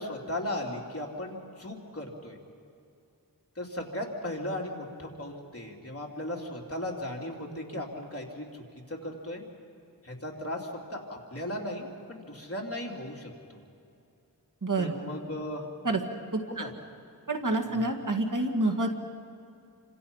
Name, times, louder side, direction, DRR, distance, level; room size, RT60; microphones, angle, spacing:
voice 1, 0.0-2.4 3.5-9.4 10.0-13.6 14.8-15.7 16.5-16.7 17.7-17.9, left 1 dB, 35° left, -1 dB, 3.4 m, -37 dB
voice 2, 14.6-14.9 15.8-16.0 16.3-16.6 17.3-19.0, right 2 dB, 55° right, 2 dB, 2.1 m, -28 dB
29.0 x 26.0 x 5.6 m, 2.5 s
wide cardioid pair, 55°, 39 cm